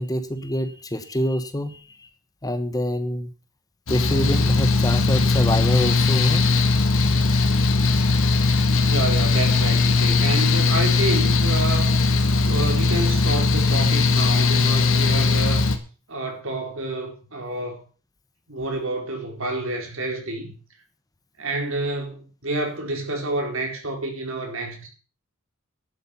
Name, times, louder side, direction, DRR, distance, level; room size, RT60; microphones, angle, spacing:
voice 1, 0.0-2.1 2.4-3.3 3.9-6.4, equal, 15° left, 1.0 m, -26 dB
Mechanical fan, 3.9-15.8, left 3 dB, 70° left, 1.7 m, -19 dB
voice 2, 8.8-11.9 12.4-15.6 16.1-17.8 18.5-20.6 21.4-24.9, right 2 dB, 65° right, 4.3 m, -29 dB
11.5 x 8.9 x 7.2 m
head